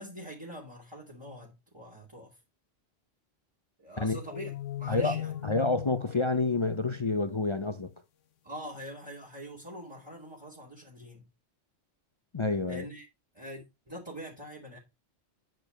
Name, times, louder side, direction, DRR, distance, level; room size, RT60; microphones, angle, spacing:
voice 1, 0.0-2.4 3.8-5.6 8.4-11.2 12.7-13.0 13.3-14.8, equal, 20° right, 2.8 m, -44 dB
sound 1, 4.3-7.7, left 12 dB, 85° left, 1.1 m, -39 dB
voice 2, 5.4-7.9 12.3-12.8, left 3 dB, 35° left, 0.5 m, -28 dB
10.5 x 5.0 x 5.2 m
omnidirectional pair, 1.2 m